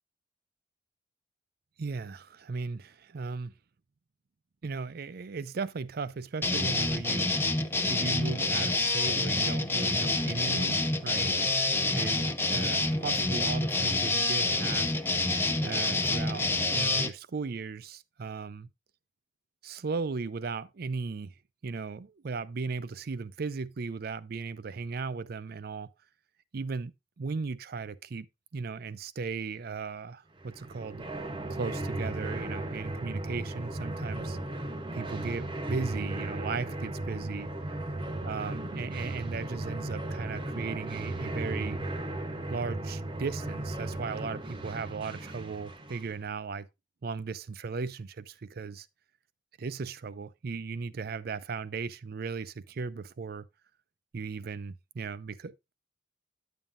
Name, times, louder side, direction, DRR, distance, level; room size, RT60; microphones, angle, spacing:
voice 1, 1.8-3.5 4.6-7.3 7.9-11.4 11.9-14.9 15.6-18.7 19.6-21.3 21.6-25.9 26.5-26.9 27.2-28.3 28.5-31.0 31.5-34.4 34.9-37.5 38.2-41.8 42.5-46.7 47.0-48.9 49.6-53.5 54.1-55.7, right 4 dB, 55° right, 0.5 m, -36 dB
sound 1, 6.4-17.1, left 2 dB, 15° left, 0.7 m, -27 dB
sound 2, 30.4-46.2, right 1 dB, 25° right, 0.8 m, -36 dB
9.9 x 7.3 x 2.5 m
head